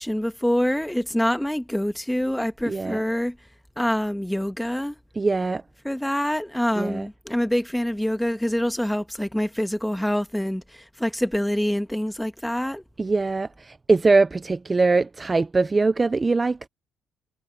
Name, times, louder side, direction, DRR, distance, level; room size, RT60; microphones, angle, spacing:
voice 1, 0.0-3.4 3.8-5.0 5.8-12.8, equal, 5° left, 1.5 m, -25 dB
voice 2, 2.7-3.0 5.2-5.6 6.8-7.1 13.0-16.7, right 3 dB, 20° right, 0.3 m, -22 dB
cardioid pair, 130°, 0 cm